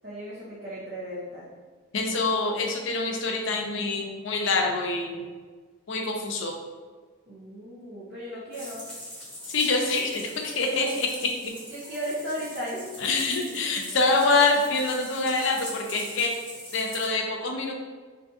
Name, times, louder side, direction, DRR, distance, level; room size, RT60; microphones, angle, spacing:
voice 1, 0.0-1.5 7.3-8.9 11.7-13.1, equal, 55° right, -9 dB, 0.7 m, -35 dB
voice 2, 1.9-5.3 5.9-6.5 9.5-11.3 13.0-16.3 16.7-17.7, left 3 dB, 65° left, 1 dB, 0.5 m, -25 dB
sound 1, 8.5-17.1, equal, 5° left, 1.3 m, -42 dB
2.6 x 2.6 x 3.5 m, 1.4 s
head